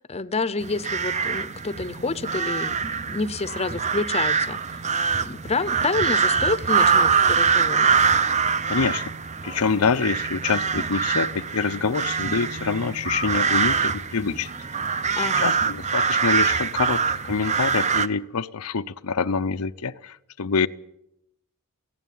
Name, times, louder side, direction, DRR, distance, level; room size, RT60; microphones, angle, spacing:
voice 1, 0.0-4.8 5.3-7.9 15.2-15.5, left 3 dB, 30° left, 0.8 m, -28 dB
sound 1, 0.6-18.1, right 5 dB, 30° right, 0.8 m, -24 dB
voice 2, 8.7-9.1 9.4-14.5 14.9-20.7, left 5 dB, 85° left, 0.7 m, -26 dB
18.5 x 15.5 x 9.4 m
head